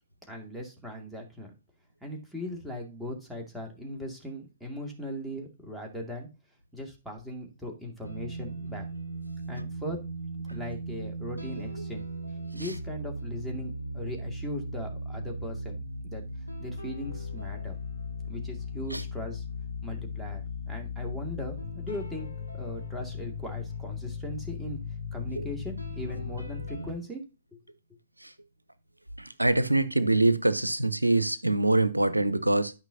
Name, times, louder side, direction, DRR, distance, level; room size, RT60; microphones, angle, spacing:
voice 1, 0.3-1.5 2.0-6.3 6.7-8.9 9.5-10.0 10.5-12.0 12.5-15.8 16.0-16.2 16.6-17.7 18.3-19.4 19.8-24.8 25.1-27.2 27.5-27.6, left 1 dB, ahead, 2.3 m, -39 dB
sound 1, 8.0-26.9, left 2 dB, 85° left, 1.9 m, -37 dB
voice 2, 29.2-32.7, right 2 dB, 85° right, 0.8 m, -24 dB
12.0 x 5.6 x 2.8 m
figure-of-eight pair, 120°, 0 cm